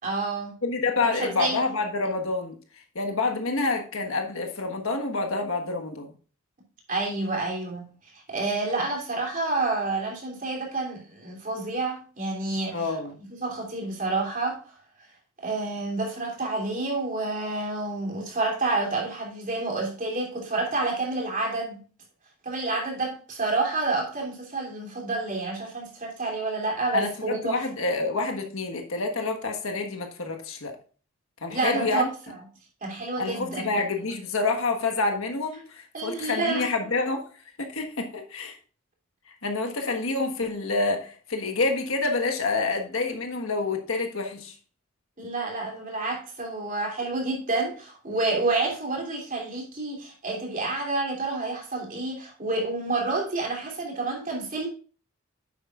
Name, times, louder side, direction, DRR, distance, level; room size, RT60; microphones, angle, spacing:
voice 1, 0.0-0.5 1.0-1.6 6.9-7.9 8.3-12.9 13.4-14.6 15.4-21.8 22.4-27.6 31.5-32.1 32.8-33.7 35.9-36.7 45.2-54.7, right 3 dB, 35° right, -1 dB, 3.1 m, -29 dB
voice 2, 0.6-2.6 2.9-6.1 12.7-13.2 26.9-30.7 31.4-32.1 33.2-37.2 37.6-38.6 39.4-44.5, left 3 dB, 70° left, 3 dB, 1.4 m, -28 dB
10.0 x 8.0 x 2.4 m, 0.39 s
head